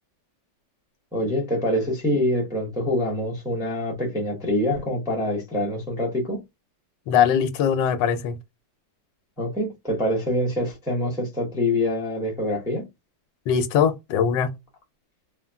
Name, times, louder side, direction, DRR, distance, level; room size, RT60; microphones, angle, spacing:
voice 1, 1.1-6.4 9.4-12.9, left 1 dB, 5° right, 0.4 m, -25 dB
voice 2, 7.1-8.4 13.5-14.5, left 8 dB, 75° left, 1.2 m, -21 dB
3.3 x 2.2 x 2.2 m
omnidirectional pair, 2.0 m